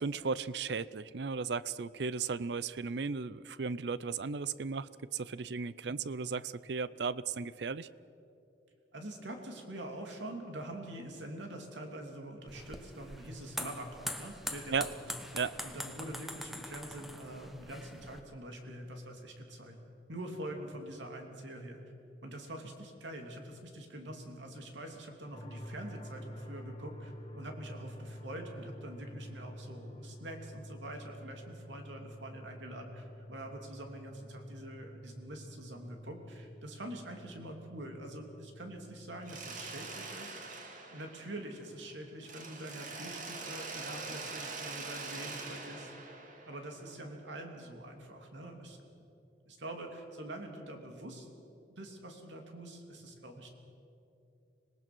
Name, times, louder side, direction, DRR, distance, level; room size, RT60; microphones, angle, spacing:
voice 1, 0.0-7.9 14.7-14.9 15.3-15.5, right 5 dB, 65° right, 18 dB, 0.5 m, -35 dB
voice 2, 8.9-19.8 20.1-21.8 22.2-40.5 40.9-46.1 46.5-48.8 49.5-51.3 51.7-53.5, right 1 dB, 85° right, 3 dB, 2.9 m, -45 dB
sound 1, 12.5-18.2, equal, ahead, 1.0 m, -43 dB
sound 2, 25.3-40.1, equal, 30° left, 2.0 m, -49 dB
Mechanisms, 39.3-41.9 42.2-47.1, right 3 dB, 45° right, 2.1 m, -44 dB
25.5 x 19.0 x 6.2 m, 2.7 s
head